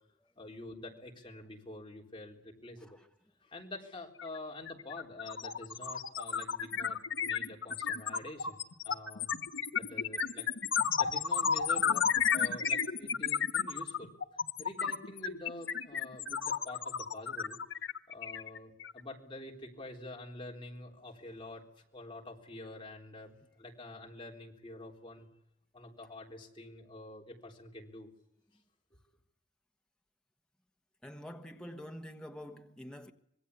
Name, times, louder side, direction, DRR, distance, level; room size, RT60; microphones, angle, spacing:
voice 1, 0.4-3.0 3.4-8.6 8.8-9.3 9.7-10.5 11.0-14.1 14.6-17.6 18.1-25.3 25.7-28.1, left 2 dB, 25° left, 3.9 m, -47 dB
sound 1, 4.2-4.4 4.7-19.0, left 7 dB, 85° left, 1.3 m, -33 dB
voice 2, 31.0-33.1, equal, 5° left, 1.3 m, -46 dB
25.5 x 21.5 x 8.3 m
head